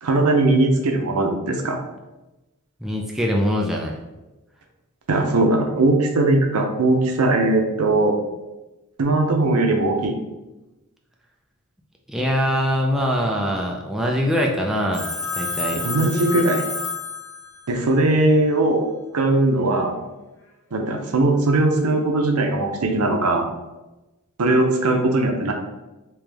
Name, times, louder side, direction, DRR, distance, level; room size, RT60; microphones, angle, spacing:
voice 1, 0.0-1.8 5.1-8.2 9.0-10.1 15.8-16.6 17.7-18.8 19.1-19.9 20.7-23.5 24.4-25.5, right 2 dB, 80° right, 3 dB, 0.6 m, -19 dB
voice 2, 2.8-4.0 12.1-15.8, equal, ahead, -1 dB, 0.3 m, -23 dB
Telephone, 14.9-17.8, left 4 dB, 55° left, 0.8 m, -29 dB
3.3 x 3.0 x 3.4 m, 1.1 s
head